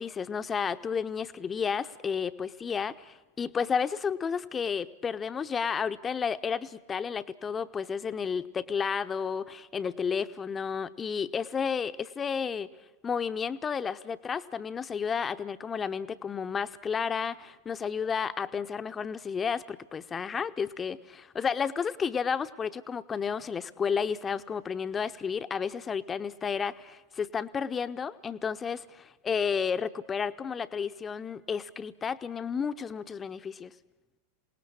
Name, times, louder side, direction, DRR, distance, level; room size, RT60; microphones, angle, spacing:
voice 1, 0.0-12.7 13.0-33.7, left 6 dB, 20° left, 12 dB, 0.9 m, -32 dB
27.0 x 19.0 x 8.7 m, 1.0 s
figure-of-eight pair, 90°, 0 cm